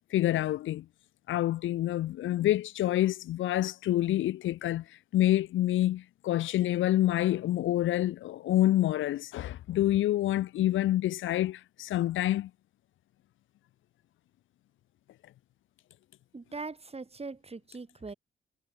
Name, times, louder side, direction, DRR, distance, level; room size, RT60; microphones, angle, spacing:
voice 1, 0.1-0.8 1.3-12.5, left 14 dB, 90° left, 4.6 m, -27 dB
voice 2, 16.3-18.1, right 3 dB, 30° right, 6.3 m, -41 dB
cardioid pair, 65°, 20 cm